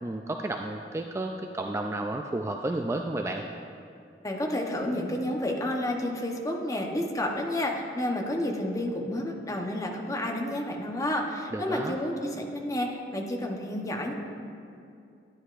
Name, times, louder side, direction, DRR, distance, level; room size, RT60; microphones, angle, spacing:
voice 1, 0.0-3.5 11.5-12.0, right 2 dB, 15° right, 3 dB, 0.3 m, -32 dB
voice 2, 4.2-14.1, left 1 dB, 20° left, 1 dB, 0.9 m, -30 dB
12.5 x 9.6 x 2.5 m, 2.5 s
head